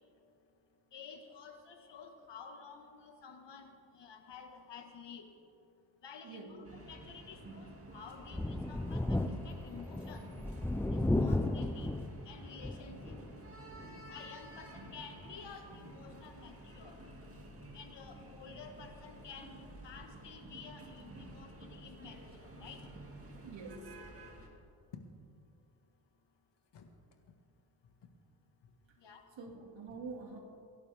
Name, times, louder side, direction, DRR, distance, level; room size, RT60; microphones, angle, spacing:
voice 1, 0.9-5.3 6.0-10.3 10.9-11.9 12.3-13.2 14.1-17.0 17.7-22.9 26.7-26.9 28.0-28.1 29.0-29.2, left 5 dB, 60° left, 5 dB, 1.8 m, -52 dB
voice 2, 6.2-6.6 23.4-24.0 29.4-30.4, right 4 dB, 70° right, 2 dB, 2.5 m, -46 dB
sound 1, 6.6-24.5, right 1 dB, 30° right, 2.4 m, -51 dB
Thunder, 8.2-13.3 13.8-13.9 15.2-15.3, left 2 dB, 5° left, 0.5 m, -34 dB
25.0 x 11.5 x 3.6 m, 2.5 s
cardioid pair, 95°, 47 cm